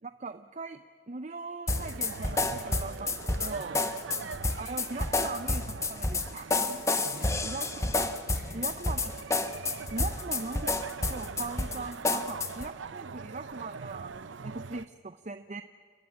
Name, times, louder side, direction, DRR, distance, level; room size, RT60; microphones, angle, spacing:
voice 1, 0.0-3.8 4.6-7.0 7.4-7.7 7.9-8.1 8.5-9.3 9.9-10.8 11.1-15.6, right 3 dB, 40° right, 10 dB, 0.6 m, -40 dB
sound 1, 1.7-12.7, left 3 dB, 15° left, 1.0 m, -30 dB
sound 2, 1.7-14.9, right 5 dB, 80° right, 0.6 m, -42 dB
voice 2, 3.5-4.5 7.0-7.8 8.3-8.8, equal, 60° right, 1 dB, 5.8 m, -49 dB
30.0 x 13.5 x 9.8 m, 2.1 s
head